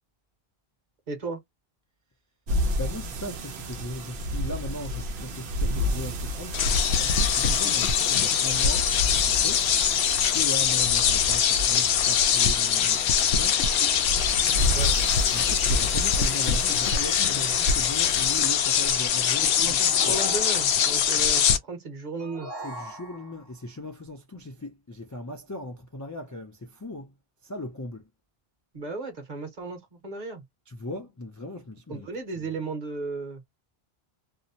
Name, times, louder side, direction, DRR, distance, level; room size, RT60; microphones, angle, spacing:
voice 1, 1.1-1.4 14.7-15.0 19.5-22.5 28.7-30.4 31.9-33.4, right 3 dB, 45° right, 1.1 m, -35 dB
sound 1, 2.5-18.4, left 1 dB, 85° right, 0.9 m, -32 dB
voice 2, 2.8-9.7 10.2-13.6 15.3-20.2 22.6-27.1 27.4-28.1 30.7-32.1 32.4-32.5, left 1 dB, 30° left, 0.3 m, -38 dB
sound 2, 6.5-21.6, left 8 dB, 90° left, 0.8 m, -23 dB
sound 3, 19.8-21.1 22.2-23.5, right 1 dB, 25° right, 0.8 m, -39 dB
2.7 x 2.1 x 2.7 m
omnidirectional pair, 1.0 m